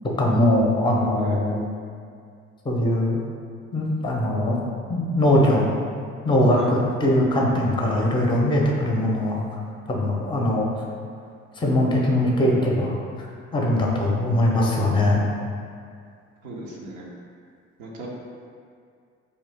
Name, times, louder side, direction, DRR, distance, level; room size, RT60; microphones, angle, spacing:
voice 1, 0.2-1.7 2.6-3.2 3.7-4.6 4.9-5.6 6.2-9.4 9.9-10.7 11.6-12.9 13.5-15.2, left 1 dB, 15° left, -2 dB, 0.5 m, -21 dB
voice 2, 16.4-17.1 17.8-18.1, right 2 dB, 85° right, -3 dB, 0.5 m, -36 dB
2.5 x 2.2 x 3.4 m, 2.2 s
figure-of-eight pair, 45°, 37 cm